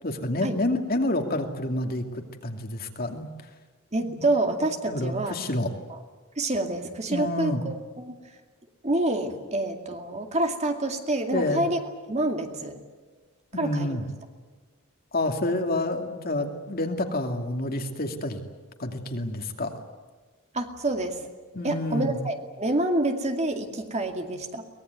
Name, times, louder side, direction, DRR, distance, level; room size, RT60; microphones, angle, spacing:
voice 1, 0.0-2.0 2.4-3.3 4.0-4.1 4.8-5.7 7.1-7.6 11.3-11.6 13.5-14.0 15.1-18.4 18.8-19.8 21.5-22.2, left 1 dB, 40° left, 4 dB, 2.5 m, -28 dB
voice 2, 3.9-5.4 6.4-8.1 8.8-11.8 12.1-12.8 13.6-14.0 20.5-21.2 21.6-24.7, right 2 dB, 30° right, 5 dB, 2.3 m, -27 dB
23.5 x 20.0 x 9.4 m, 1.4 s
head